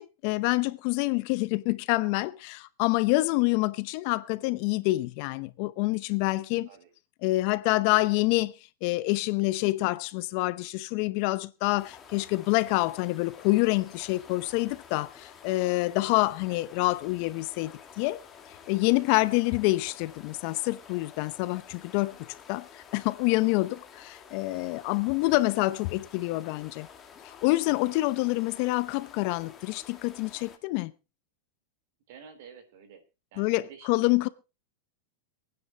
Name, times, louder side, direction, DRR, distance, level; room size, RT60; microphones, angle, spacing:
voice 1, 0.0-6.7 7.2-8.5 8.8-18.2 18.7-22.2 22.5-26.9 27.2-30.9 33.4-34.3, left 21 dB, 45° left, 0.7 m, -27 dB
sound 1, 11.8-30.6, left 7 dB, 20° left, 1.8 m, -50 dB
voice 2, 32.1-33.0 33.3-34.3, right 7 dB, 60° right, 3.7 m, -51 dB
26.5 x 9.7 x 3.0 m
supercardioid pair, 160°, 0 cm